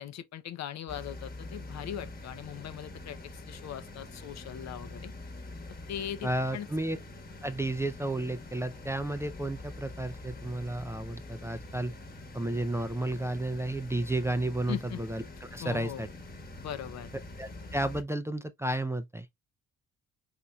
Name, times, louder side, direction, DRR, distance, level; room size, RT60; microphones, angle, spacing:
voice 1, 0.0-5.1 5.9-6.7 14.7-15.0 15.6-16.1 16.6-17.1, left 10 dB, 60° left, 0.6 m, -40 dB
sound 1, 0.9-18.0, left 2 dB, 30° left, 1.2 m, -45 dB
voice 2, 6.2-7.0 7.4-11.9 12.3-15.2 15.5-16.1 17.4-19.3, right 1 dB, 10° right, 0.4 m, -32 dB
4.3 x 4.0 x 2.3 m
cardioid pair, 90°, 30 cm